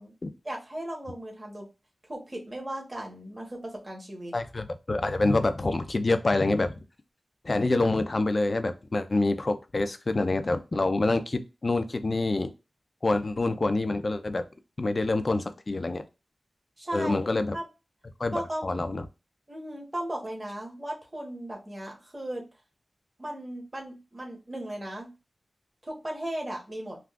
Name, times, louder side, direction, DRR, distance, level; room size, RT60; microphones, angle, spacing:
voice 1, 0.4-1.7 2.1-4.3 16.8-17.2 17.5-17.6 18.3-18.7 19.5-22.5 23.2-25.1 25.9-27.0, right 1 dB, 30° right, -1 dB, 1.2 m, -36 dB
voice 2, 4.3-6.7 7.4-12.5 13.0-14.4 14.8-16.0 16.9-17.6 18.2-19.0, left 2 dB, 50° left, 9 dB, 0.4 m, -26 dB
3.5 x 2.4 x 2.4 m, 0.28 s
wide cardioid pair, 70°, 0 cm